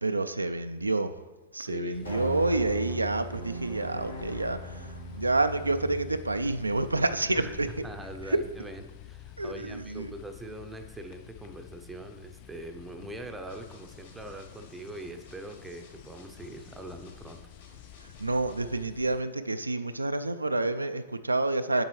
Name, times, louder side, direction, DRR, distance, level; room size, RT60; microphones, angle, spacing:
voice 1, 0.0-1.1 1.5-7.8 8.3-8.4 9.4-10.1 18.2-21.8, right 2 dB, 90° right, 10 dB, 0.3 m, -28 dB
voice 2, 1.6-2.2 7.4-7.5 7.8-17.4, right 1 dB, 10° right, 6 dB, 0.6 m, -42 dB
sound 1, 1.9-19.2, left 12 dB, 40° left, 0.4 m, -49 dB
sound 2, 2.0-8.5, right 1 dB, 85° left, 1.8 m, -41 dB
sound 3, 13.5-18.8, left 4 dB, 65° left, 1.8 m, -54 dB
7.3 x 7.3 x 3.1 m, 1.2 s
figure-of-eight pair, 105°, 0 cm